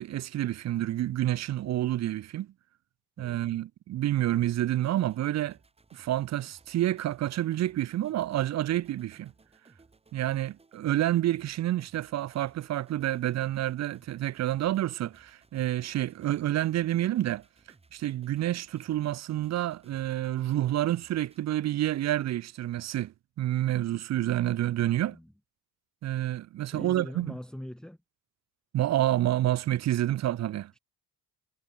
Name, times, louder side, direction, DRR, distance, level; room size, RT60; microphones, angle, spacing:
voice 1, 0.0-2.5 3.2-5.6 5.9-9.3 10.1-17.4 17.9-25.2 26.0-27.3 28.7-30.7, right 13 dB, 45° right, 0.5 m, -28 dB
sound 1, 4.3-21.4, right 3 dB, 15° right, 2.7 m, -62 dB
voice 2, 24.9-25.3 26.7-28.0, left 1 dB, ahead, 1.2 m, -42 dB
cardioid pair, 155°, 39 cm